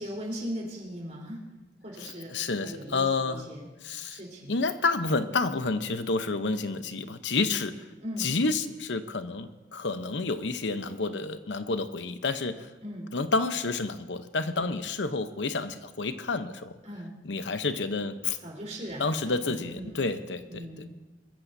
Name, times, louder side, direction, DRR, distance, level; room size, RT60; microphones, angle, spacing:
voice 1, 0.0-1.4 1.8-2.3 2.6-3.7 4.1-4.5 8.0-8.3 12.8-13.1 14.6-14.7 16.8-17.1 18.4-20.0 20.5-20.9, equal, 40° right, -3 dB, 3.8 m, -39 dB
voice 2, 2.3-3.5 3.8-4.2 4.5-7.7 8.2-12.6 13.1-16.7 17.2-18.4 19.0-20.9, left 3 dB, 85° left, 10 dB, 0.8 m, -29 dB
22.5 x 14.5 x 2.7 m, 1.1 s
head